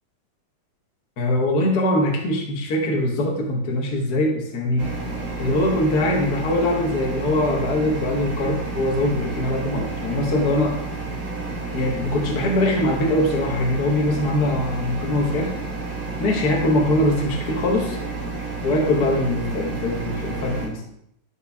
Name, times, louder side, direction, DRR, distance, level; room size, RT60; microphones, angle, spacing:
voice 1, 1.2-4.9 5.4-10.8 11.7-15.5 16.2-18.0 18.6-20.8, left 1 dB, 55° left, 0 dB, 1.1 m, -22 dB
sound 1, 4.8-20.7, right 3 dB, 25° right, 2.8 m, -31 dB
12.0 x 4.4 x 3.6 m, 0.75 s
omnidirectional pair, 4.1 m